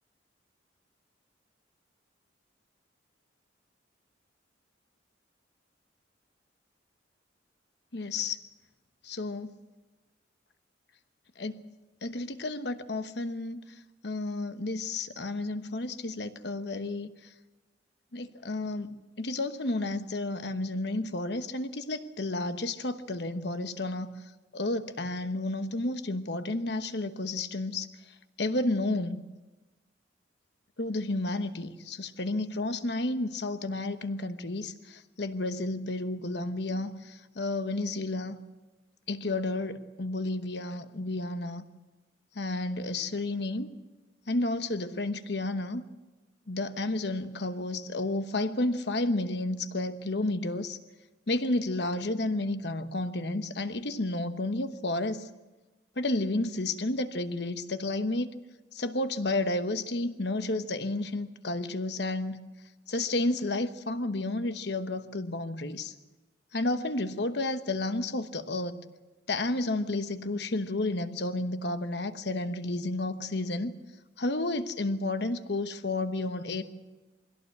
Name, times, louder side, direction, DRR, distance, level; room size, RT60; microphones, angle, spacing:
voice 1, 7.9-8.4 9.0-9.5 11.4-11.7 12.0-13.6 14.0-17.1 18.1-18.9 19.2-24.1 24.5-27.9 28.4-29.2 30.8-38.4 39.1-41.6 42.3-43.7 44.3-45.8 46.5-50.8 51.3-55.3 56.0-58.3 58.7-62.4 62.9-65.9 66.5-68.8 69.3-73.7 74.2-76.6, left 2 dB, 60° left, 10 dB, 1.1 m, -31 dB
21.5 x 16.5 x 8.0 m, 1.2 s
head